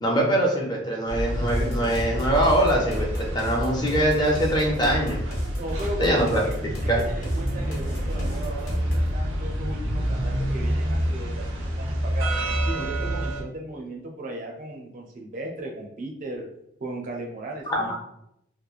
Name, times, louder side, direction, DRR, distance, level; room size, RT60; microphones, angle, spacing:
voice 1, 0.0-5.2 6.0-6.4 6.9-7.0 17.7-17.9, right 1 dB, 20° left, -1 dB, 0.5 m, -23 dB
sound 1, 1.1-13.4, equal, 85° right, 0.6 m, -28 dB
sound 2, 1.5-9.2, equal, 90° left, 1.0 m, -33 dB
voice 2, 5.5-12.3 12.6-16.5 16.8-17.9, right 1 dB, 45° right, 0 dB, 0.4 m, -36 dB
2.9 x 2.2 x 2.3 m, 0.77 s
head